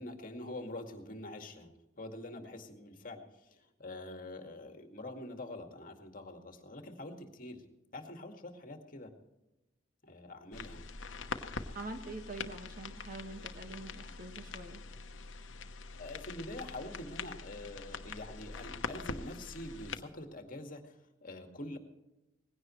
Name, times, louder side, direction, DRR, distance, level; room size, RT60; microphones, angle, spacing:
voice 1, 0.0-1.7 2.0-7.6 7.9-9.1 10.0-10.8 16.0-21.8, left 1 dB, 45° left, 4 dB, 2.1 m, -45 dB
sound 1, 10.5-20.0, left 4 dB, 80° left, 1.0 m, -44 dB
voice 2, 11.7-14.8, right 2 dB, 45° right, 5 dB, 1.7 m, -45 dB
19.5 x 16.5 x 3.2 m, 0.95 s
head